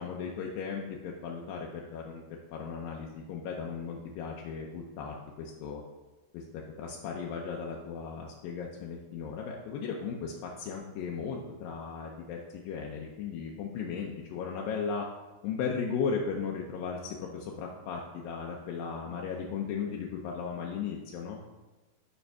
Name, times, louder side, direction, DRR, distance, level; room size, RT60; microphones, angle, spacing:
voice 1, 0.0-2.2 2.5-5.8 6.3-15.1 15.4-21.4, left 6 dB, 80° left, -1 dB, 2.0 m, -36 dB
9.8 x 3.4 x 5.4 m, 1.2 s
omnidirectional pair, 4.8 m